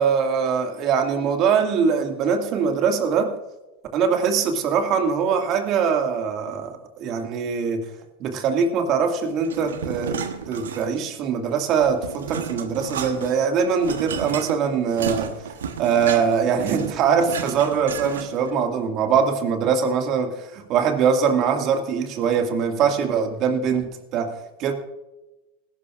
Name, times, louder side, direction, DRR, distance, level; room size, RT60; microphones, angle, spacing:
voice 1, 0.0-3.3 3.9-7.8 8.2-10.2 10.5-15.3 15.8-24.3 24.6-24.7, right 6 dB, 45° right, 4 dB, 2.1 m, -22 dB
sound 1, 9.4-11.1 11.5-18.5, right 7 dB, 80° right, 1.2 m, -32 dB
20.5 x 12.0 x 2.5 m, 1.0 s
hypercardioid pair, 90°, 0 cm